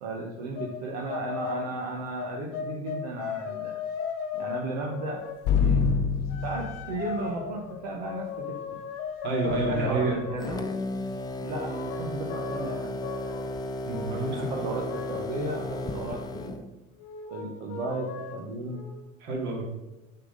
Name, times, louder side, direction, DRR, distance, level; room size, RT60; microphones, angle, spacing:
voice 1, 0.0-3.8 4.3-5.2 6.4-8.8 9.4-10.7 11.4-13.0 14.2-16.6 17.3-18.9, right 2 dB, 90° right, 0 dB, 1.0 m, -34 dB
sound 1, 0.5-0.8 1.1-1.7 2.2-5.5 6.3-10.5 11.5-13.5 13.9-14.2 14.5-16.5 17.0-19.0, left 7 dB, 85° left, 1.3 m, -37 dB
sound 2, 5.5-7.2 9.5-10.4, left 6 dB, 60° left, 0.7 m, -26 dB
voice 2, 9.2-10.2 13.9-14.7 19.2-19.7, right 3 dB, 65° right, -1 dB, 2.3 m, -30 dB
sound 3, 10.4-16.6, left 2 dB, 20° left, 0.6 m, -34 dB
6.7 x 5.7 x 3.8 m, 1.0 s
supercardioid pair, 100°, 20 cm